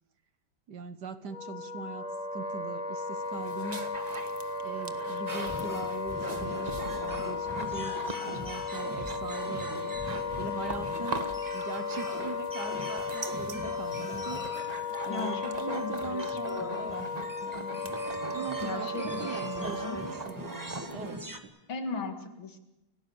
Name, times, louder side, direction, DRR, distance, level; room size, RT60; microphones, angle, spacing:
voice 1, 0.7-3.8 4.6-10.0 10.4-17.1 18.3-21.5, right 5 dB, 60° right, 11 dB, 1.6 m, -41 dB
Wind instrument woodwind instrument, 1.3-20.4, left 4 dB, 15° left, 1.9 m, -35 dB
sound 1, 3.1-21.2, right 3 dB, 25° right, 1.0 m, -42 dB
sound 2, 5.3-21.4, right 1 dB, 10° right, 1.8 m, -42 dB
voice 2, 15.1-17.1 18.6-20.0 21.7-22.6, left 4 dB, 70° left, 6 dB, 2.8 m, -38 dB
29.5 x 17.5 x 7.1 m, 0.98 s
omnidirectional pair, 2.3 m